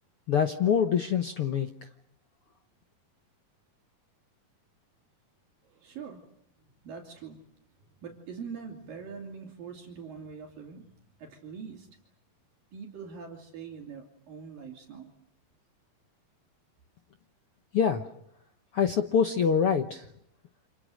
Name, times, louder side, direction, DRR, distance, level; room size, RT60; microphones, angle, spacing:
voice 1, 0.3-1.7 17.7-18.0 18.7-20.0, left 7 dB, 75° left, 6 dB, 1.3 m, -25 dB
voice 2, 5.7-6.2 6.8-7.4 7.9-10.8 11.2-11.9 12.7-15.1, right 6 dB, 70° right, 0 dB, 4.5 m, -43 dB
29.0 x 27.5 x 6.5 m, 0.75 s
omnidirectional pair, 4.2 m